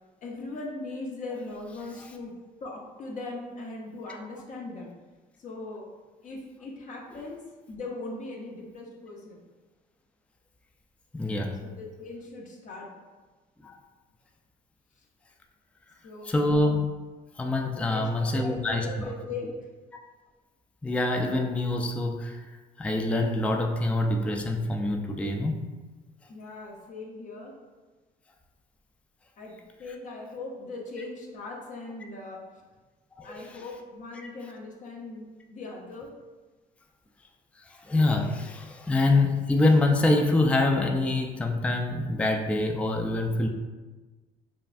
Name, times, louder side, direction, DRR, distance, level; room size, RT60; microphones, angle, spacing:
voice 1, 0.2-2.3 2.6-4.9 5.4-5.9 6.2-7.4 7.7-9.4 11.6-12.9 16.0-16.5 17.7-19.5 26.3-27.5 29.4-32.4 33.2-35.2 35.5-36.1, left 3 dB, 50° left, -1 dB, 0.7 m, -39 dB
voice 2, 11.1-11.6 13.6-13.8 16.2-16.8 17.4-19.1 20.8-22.4 22.8-25.7 33.2-33.6 37.6-43.5, left 2 dB, 5° left, 3 dB, 0.3 m, -25 dB
5.5 x 2.4 x 2.5 m, 1.3 s
cardioid pair, 110°, 17 cm